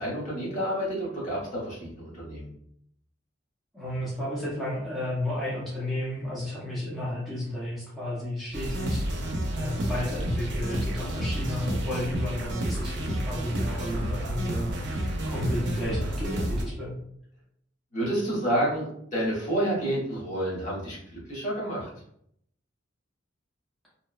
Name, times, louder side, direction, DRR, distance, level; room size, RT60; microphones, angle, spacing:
voice 1, 0.0-2.5 17.9-21.9, right 1 dB, 40° left, -6 dB, 0.9 m, -29 dB
voice 2, 3.7-17.0, left 1 dB, ahead, -9 dB, 0.7 m, -32 dB
sound 1, 8.5-16.6, equal, 60° right, 0.5 m, -30 dB
2.7 x 2.1 x 2.3 m, 0.70 s
head